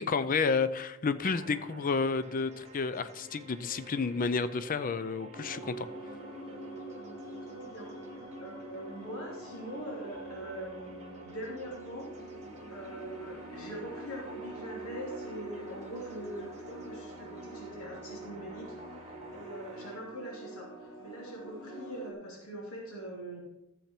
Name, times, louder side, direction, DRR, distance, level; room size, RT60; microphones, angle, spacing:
voice 1, 0.0-5.9, left 4 dB, 40° left, 13 dB, 0.5 m, -30 dB
sound 1, 1.2-20.0, right 2 dB, 30° right, 1.2 m, -51 dB
sound 2, 5.3-22.1, right 2 dB, 70° left, 1.6 m, -45 dB
voice 2, 7.5-7.9 8.4-12.3 12.7-23.4, right 1 dB, 90° left, -3 dB, 2.8 m, -43 dB
13.5 x 7.3 x 4.4 m, 0.89 s
head